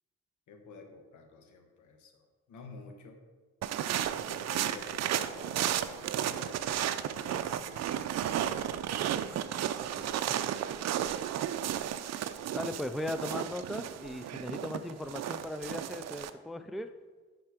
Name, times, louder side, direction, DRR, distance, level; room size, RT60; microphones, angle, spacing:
voice 1, 0.5-2.1 2.5-3.2 4.2-8.0 11.3-11.6, left 4 dB, 75° left, 4 dB, 1.4 m, -50 dB
sound 1, 3.6-16.3, right 10 dB, 60° right, 0.5 m, -33 dB
voice 2, 9.5-10.4 12.5-16.9, left 1 dB, ahead, 10 dB, 0.3 m, -38 dB
10.5 x 4.5 x 4.9 m, 1.3 s
cardioid pair, 90°, 30 cm